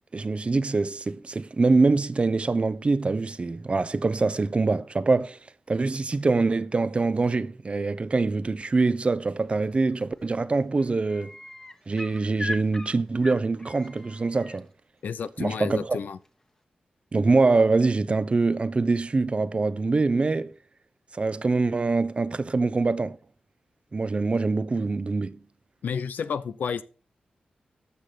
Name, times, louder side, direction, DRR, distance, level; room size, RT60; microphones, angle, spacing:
voice 1, 0.1-5.4 5.7-11.3 11.9-14.7 15.4-16.0 17.1-20.5 21.1-23.2 23.9-25.4, right 3 dB, 40° right, 0.8 m, -24 dB
sound 1, 9.9-10.2 10.5-14.6 16.2-16.3, left 1 dB, 20° left, 1.5 m, -39 dB
voice 2, 15.0-16.2 25.8-26.8, left 6 dB, 85° left, 0.8 m, -31 dB
13.5 x 6.0 x 5.0 m
cardioid pair, 60°, 3 cm